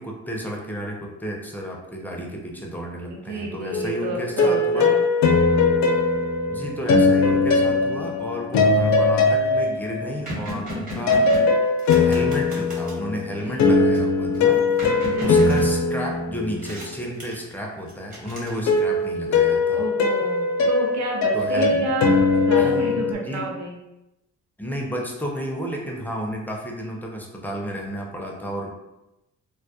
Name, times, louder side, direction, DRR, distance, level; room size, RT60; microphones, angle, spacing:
voice 1, 0.0-4.9 6.5-11.4 12.0-14.6 15.2-19.8 21.3-21.9 22.5-23.5 24.6-28.7, equal, 5° left, 0 dB, 0.4 m, -32 dB
voice 2, 3.1-5.0 13.4-13.6 15.0-15.4 19.7-23.8, right 2 dB, 70° right, -1 dB, 0.7 m, -30 dB
sound 1, 3.7-10.3 11.1-17.0 18.7-23.1, left 3 dB, 65° left, 0.4 m, -20 dB
sound 2, 8.6-8.9 9.4-9.5 9.7-13.0 13.9-16.2 16.6-17.5 17.9-19.0, equal, 30° right, 1.0 m, -34 dB
2.2 x 2.1 x 2.7 m, 0.92 s
cardioid pair, 90°, 30 cm